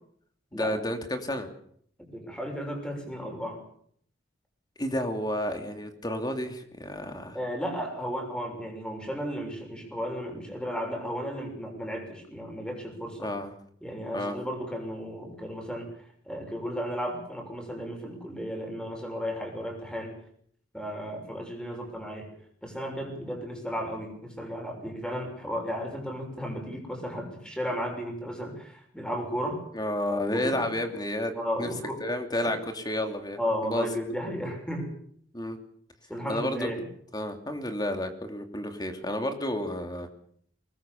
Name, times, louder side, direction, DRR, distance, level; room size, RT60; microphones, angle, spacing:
voice 1, 0.5-1.5 4.8-7.4 13.2-13.5 14.1-14.3 29.7-31.3 31.6-31.7 32.0-33.4 33.6-33.9 35.3-35.6 36.3-36.7 37.1-40.1, left 1 dB, 20° left, 6 dB, 2.8 m, -31 dB
voice 2, 2.0-3.6 7.3-13.3 13.8-20.1 20.7-22.3 22.6-29.6 30.3-30.8 31.3-32.0 32.5-32.6 33.4-34.9 36.1-36.8, equal, 5° left, 3 dB, 6.7 m, -34 dB
24.0 x 19.5 x 7.1 m, 0.64 s
head